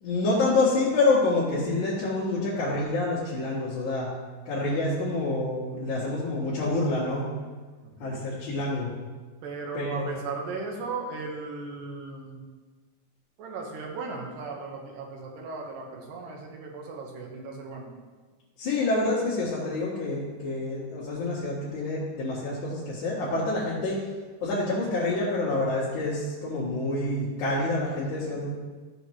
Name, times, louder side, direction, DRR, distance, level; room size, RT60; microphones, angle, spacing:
voice 1, 0.0-4.1 4.5-7.3 8.0-8.9 9.7-10.1 18.6-24.0 24.4-28.5, left 2 dB, 65° left, -9 dB, 2.8 m, -27 dB
voice 2, 7.8-8.3 9.4-12.4 13.4-17.9, right 4 dB, 80° right, 0 dB, 2.9 m, -37 dB
14.0 x 6.6 x 3.1 m, 1.4 s
omnidirectional pair, 3.9 m